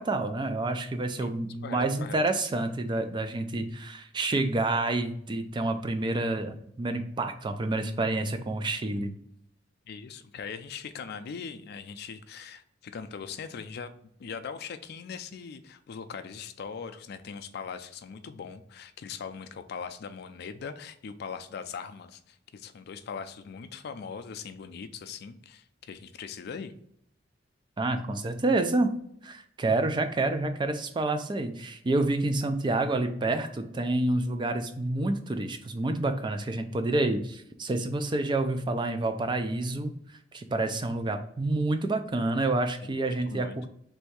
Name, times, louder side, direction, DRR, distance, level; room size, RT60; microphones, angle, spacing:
voice 1, 0.0-9.1 27.8-28.9 29.2-39.9 40.3-43.7, right 2 dB, 25° right, 7 dB, 0.4 m, -28 dB
voice 2, 1.6-2.2 9.9-13.9 14.2-26.7 42.8-43.7, left 6 dB, 60° left, 9 dB, 0.4 m, -40 dB
3.4 x 2.6 x 4.6 m, 0.71 s
head